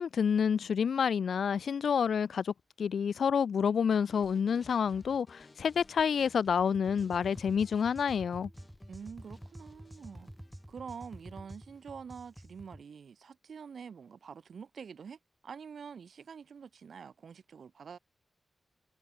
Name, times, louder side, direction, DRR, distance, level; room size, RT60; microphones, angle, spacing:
voice 1, 0.0-8.5, left 7 dB, 90° left, 0.3 m, -29 dB
sound 1, 3.9-12.0, left 3 dB, 25° left, 7.1 m, -59 dB
sound 2, 6.7-12.8, equal, 5° right, 2.7 m, -49 dB
voice 2, 8.9-10.3 10.7-18.0, right 6 dB, 70° right, 1.0 m, -46 dB
wide cardioid pair, 175°, 0 cm